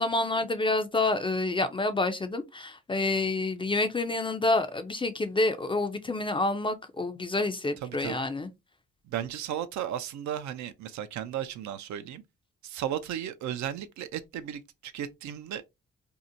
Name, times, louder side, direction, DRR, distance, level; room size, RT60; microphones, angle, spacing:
voice 1, 0.0-8.5, left 2 dB, 20° left, 0.4 m, -28 dB
voice 2, 7.8-8.2 9.1-12.2 12.6-15.6, right 10 dB, 70° right, 0.4 m, -35 dB
2.7 x 2.1 x 2.5 m
cardioid pair, 90°, 30 cm